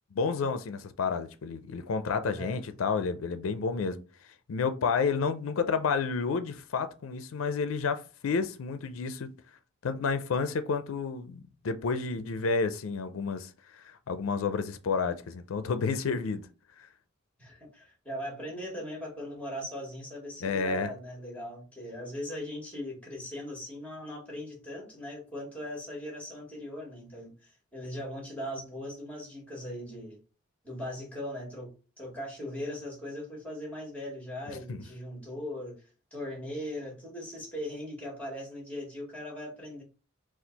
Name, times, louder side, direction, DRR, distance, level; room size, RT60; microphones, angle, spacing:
voice 1, 0.1-4.0 4.5-9.3 9.8-16.5 20.4-20.9 34.7-34.8, left 5 dB, 85° left, 0.4 m, -30 dB
voice 2, 2.2-2.6 12.0-12.4 17.4-30.2 30.6-39.8, left 1 dB, 10° left, 1.9 m, -39 dB
4.3 x 2.4 x 4.0 m
head